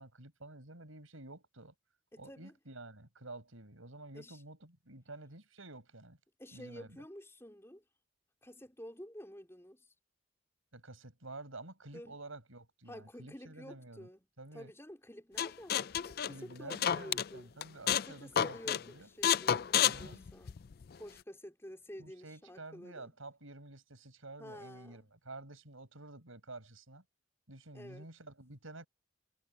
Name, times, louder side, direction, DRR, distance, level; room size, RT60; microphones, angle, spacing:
voice 1, 0.0-1.7 2.2-6.2 6.5-7.0 10.7-14.1 14.4-14.7 16.3-19.1 19.8-20.2 22.0-27.0 27.5-28.9, right 2 dB, 85° right, 5.7 m, -50 dB
voice 2, 2.1-2.5 4.1-4.4 6.4-7.8 8.4-9.9 11.9-12.2 12.9-14.3 14.5-17.5 17.9-20.6 21.0-23.1 24.4-25.0 27.7-28.1, equal, 10° left, 4.5 m, -50 dB
sound 1, 15.4-17.3 17.6-18.1 18.4-18.8 19.2-20.8, left 9 dB, 45° left, 0.4 m, -30 dB
head